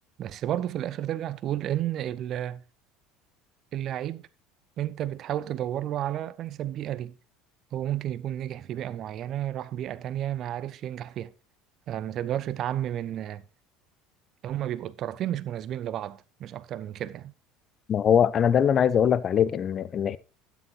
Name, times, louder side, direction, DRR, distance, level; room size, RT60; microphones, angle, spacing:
voice 1, 0.2-2.6 3.7-4.3 4.8-7.2 7.7-11.3 11.9-13.4 14.4-17.3, right 11 dB, 45° right, 0.8 m, -32 dB
voice 2, 17.9-20.2, left 8 dB, 40° left, 0.7 m, -22 dB
12.5 x 9.4 x 2.9 m
figure-of-eight pair, 65°, 0 cm